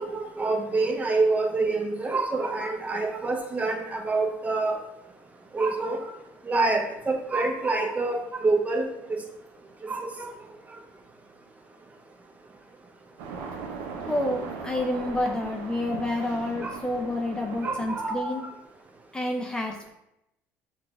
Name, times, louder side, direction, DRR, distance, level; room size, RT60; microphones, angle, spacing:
voice 1, 0.0-4.8 5.5-6.0 6.5-8.9 9.9-10.3 16.6-16.8 17.6-18.3, right 3 dB, 25° right, 3 dB, 0.8 m, -26 dB
sound 1, 13.2-18.2, right 5 dB, 80° right, 0.6 m, -38 dB
voice 2, 14.1-18.4 19.1-19.9, left 1 dB, 15° left, 2 dB, 0.4 m, -29 dB
5.7 x 2.4 x 3.4 m, 0.86 s
supercardioid pair, 85°, 6 cm